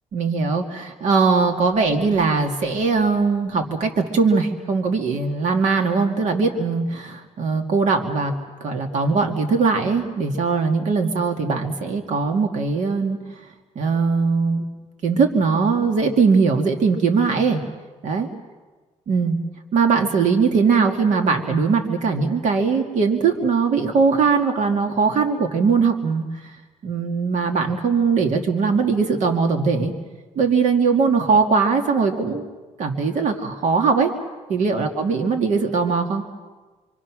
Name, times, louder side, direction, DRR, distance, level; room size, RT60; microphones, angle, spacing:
voice 1, 0.1-8.3 8.6-13.2 13.8-14.7 15.0-17.6 18.0-18.3 19.1-19.4 19.7-26.6 26.8-29.9 30.4-32.4 32.8-34.1 34.5-36.2, right 5 dB, 70° right, 4 dB, 2.3 m, -20 dB
26.0 x 25.5 x 6.2 m, 1.3 s
cardioid pair, 90°, 13 cm